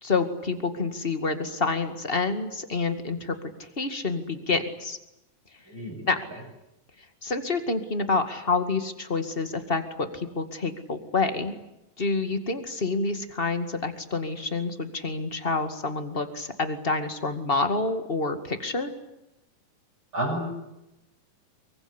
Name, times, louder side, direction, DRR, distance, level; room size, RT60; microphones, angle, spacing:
voice 1, 0.0-3.3 3.6-5.0 6.1-6.2 7.2-11.5 12.0-18.9, left 3 dB, 20° left, 8 dB, 1.5 m, -28 dB
voice 2, 5.7-6.1 20.1-20.5, right 1 dB, 35° right, -5 dB, 8.3 m, -30 dB
24.5 x 23.5 x 9.9 m, 0.89 s
omnidirectional pair, 3.9 m